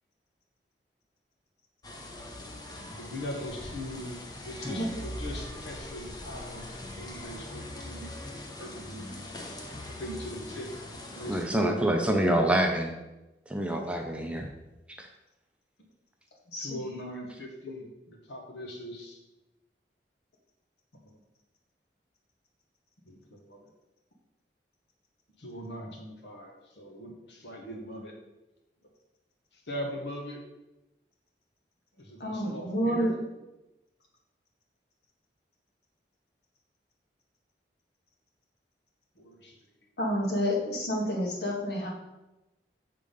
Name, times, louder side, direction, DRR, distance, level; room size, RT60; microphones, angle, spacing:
Rain and Street Noise in Centro Habana - Nighttime, 1.8-11.4, left 1 dB, 20° left, 0.7 m, -41 dB
voice 1, 2.8-6.7 6.9-9.0 10.0-10.7 11.1-12.2 16.6-19.2 23.0-23.7 25.4-28.1 29.5-30.4 32.0-33.1 39.1-39.6 40.0-40.4 40.7-41.1, equal, 85° left, 0 dB, 1.3 m, -41 dB
voice 2, 11.3-12.9 13.5-14.5 15.0-15.1, right 1 dB, 5° right, 2 dB, 0.5 m, -27 dB
voice 3, 32.2-33.1 40.0-41.9, equal, 70° left, -3 dB, 1.7 m, -29 dB
6.9 x 3.8 x 5.1 m, 1.0 s
head